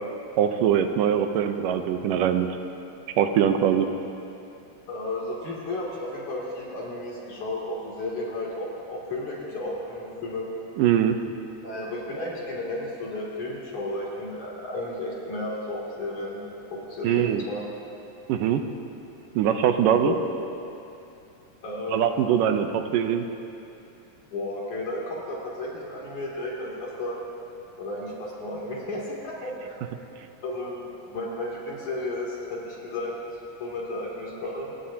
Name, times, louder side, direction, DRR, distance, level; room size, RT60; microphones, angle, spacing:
voice 1, 0.4-2.5 3.2-3.9 10.8-11.2 17.0-17.4 18.3-18.6 19.4-20.1 21.9-23.3, right 9 dB, 90° right, 6 dB, 2.5 m, -22 dB
voice 2, 4.9-10.5 11.6-16.4 16.7-17.6 20.0-20.2 21.6-22.0 24.3-27.2 27.8-29.8 30.4-33.1 33.6-34.7, left 2 dB, 65° left, -5 dB, 4.3 m, -33 dB
26.5 x 18.5 x 2.9 m, 2.8 s
omnidirectional pair, 3.7 m